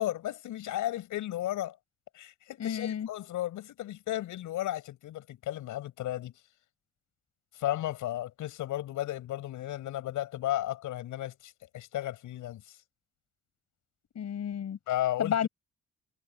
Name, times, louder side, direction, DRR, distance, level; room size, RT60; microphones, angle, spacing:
voice 1, 0.0-1.8 2.1-6.3 7.5-12.8 14.9-15.5, left 14 dB, 85° left, 6.3 m, -34 dB
voice 2, 2.6-3.1 14.2-14.8 15.2-15.5, left 8 dB, 60° left, 7.2 m, -31 dB
cardioid pair, 90°, 30 cm